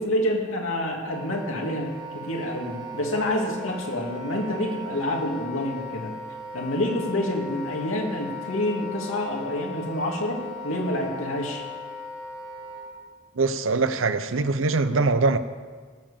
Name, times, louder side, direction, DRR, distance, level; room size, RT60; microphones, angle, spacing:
voice 1, 0.0-6.1 6.5-11.6, left 1 dB, 85° left, 0 dB, 2.6 m, -28 dB
Wind instrument woodwind instrument, 1.0-12.9, left 2 dB, 20° right, 1.8 m, -38 dB
voice 2, 13.3-15.4, right 3 dB, 80° right, 12 dB, 0.7 m, -22 dB
17.0 x 7.5 x 7.2 m, 1.5 s
head